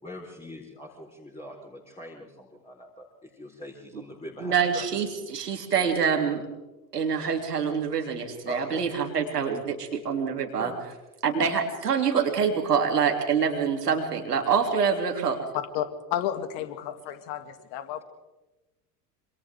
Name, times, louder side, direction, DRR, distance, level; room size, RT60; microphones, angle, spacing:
voice 1, 0.0-4.9 8.5-8.8 10.6-10.8, left 1 dB, 10° left, -3 dB, 4.5 m, -42 dB
voice 2, 4.4-6.4 6.9-10.7 11.2-15.4, right 6 dB, 75° right, 3 dB, 3.3 m, -26 dB
voice 3, 15.5-18.0, left 11 dB, 50° left, 9 dB, 2.3 m, -32 dB
27.0 x 26.5 x 3.8 m, 1.1 s
figure-of-eight pair, 70°, 47 cm